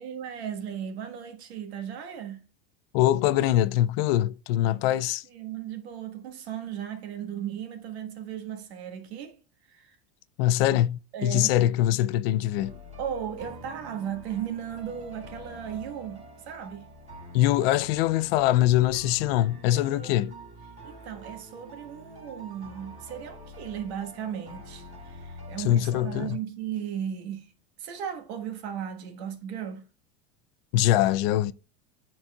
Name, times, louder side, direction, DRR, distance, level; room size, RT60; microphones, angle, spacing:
voice 1, 0.0-2.5 4.6-4.8 5.3-9.4 9.7-10.0 11.1-11.6 13.0-16.9 19.7-20.1 20.8-27.5 27.8-29.8, right 9 dB, 90° right, 1.5 m, -36 dB
voice 2, 2.9-5.2 10.4-12.8 17.3-20.3 25.6-26.4 30.7-31.5, left 13 dB, 65° left, 0.5 m, -23 dB
sound 1, 12.5-26.4, equal, 20° right, 2.1 m, -45 dB
10.5 x 4.2 x 2.3 m
supercardioid pair, 155°, 31 cm